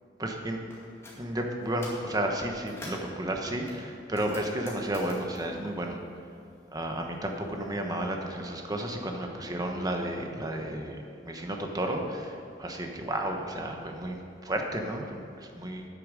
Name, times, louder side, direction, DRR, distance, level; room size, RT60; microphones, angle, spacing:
voice 1, 0.2-0.6 1.2-6.0 6.7-15.9, right 1 dB, 20° right, 2 dB, 1.1 m, -32 dB
sound 1, 0.7-1.2 1.6-2.1 2.5-3.1 3.7-6.6 6.9-8.0, left 1 dB, 15° left, 2.1 m, -47 dB
10.0 x 8.6 x 6.3 m, 2.6 s
head